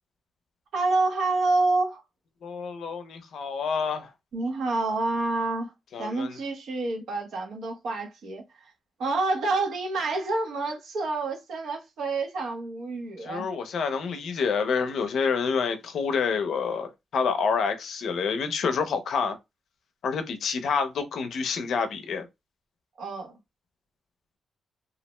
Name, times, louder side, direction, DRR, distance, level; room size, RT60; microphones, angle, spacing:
voice 1, 0.7-2.0 4.3-5.7 6.0-8.7 9.0-13.5 23.0-23.3, right 3 dB, 75° right, 0.8 m, -28 dB
voice 2, 2.4-4.1 5.9-6.4 13.2-19.4 20.0-22.2, left 5 dB, 65° left, 0.4 m, -28 dB
2.4 x 2.1 x 3.0 m
wide cardioid pair, 175°, 0 cm